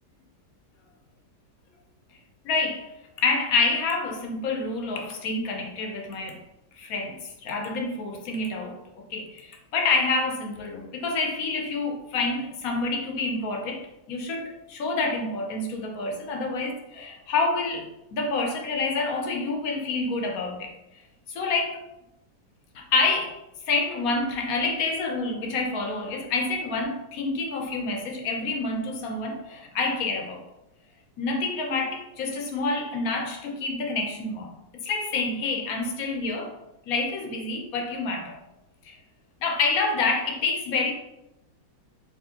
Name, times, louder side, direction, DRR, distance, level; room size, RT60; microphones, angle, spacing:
voice 1, 2.4-2.9 3.2-6.4 6.8-20.7 21.3-21.8 22.7-23.4 23.7-30.4 31.2-34.5 34.8-36.5 36.9-38.4 38.8-39.0 39.4-40.9, left 3 dB, 65° left, 3 dB, 1.0 m, -28 dB
4.9 x 3.1 x 2.8 m, 0.91 s
omnidirectional pair, 1.8 m